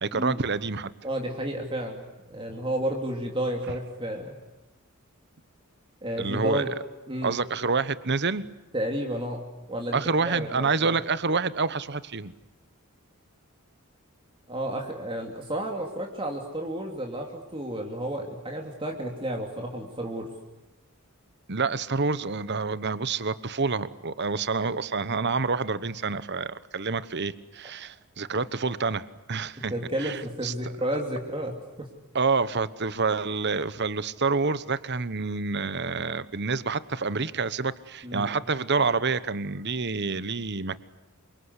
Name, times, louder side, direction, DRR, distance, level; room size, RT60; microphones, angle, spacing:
voice 1, 0.0-0.9 6.2-6.6 7.2-8.5 9.9-12.3 21.5-29.7 30.0-30.7 32.1-40.8, right 4 dB, 50° right, 15 dB, 1.1 m, -28 dB
voice 2, 1.0-4.3 6.0-6.7 7.1-7.4 8.7-10.9 14.5-20.3 29.7-31.9 38.0-38.3, right 1 dB, 25° right, 1 dB, 2.9 m, -32 dB
28.0 x 25.0 x 8.3 m, 1.1 s
head